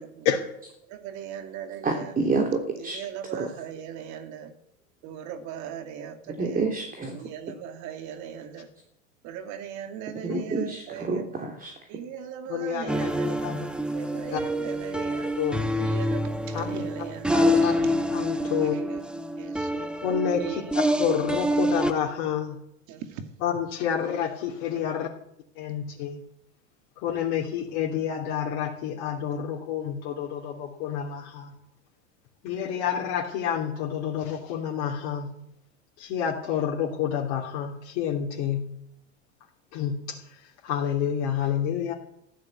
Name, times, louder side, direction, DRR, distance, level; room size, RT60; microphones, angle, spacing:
voice 1, 0.9-2.1 2.8-4.5 5.0-6.6 7.1-8.7 9.2-11.3 11.9-13.3 13.9-15.3 15.8-17.8 18.6-19.0 19.4-19.9 20.4-20.6 22.9-23.2, right 9 dB, 50° right, 7 dB, 2.5 m, -39 dB
voice 2, 1.8-3.0 3.3-3.5 6.4-7.2 10.2-11.7, right 4 dB, 20° right, 3 dB, 3.1 m, -28 dB
voice 3, 12.5-13.6 14.3-14.4 15.4-15.6 16.5-16.8 17.3-17.7 18.1-18.8 20.0-22.6 23.4-25.1 25.5-26.2 27.0-31.5 32.4-35.3 36.0-38.7 39.7-41.9, left 8 dB, 55° left, -2 dB, 3.0 m, -29 dB
sound 1, 12.9-21.9, equal, 5° right, 1.5 m, -26 dB
14.5 x 12.0 x 8.2 m, 0.76 s
hypercardioid pair, 90°, 37 cm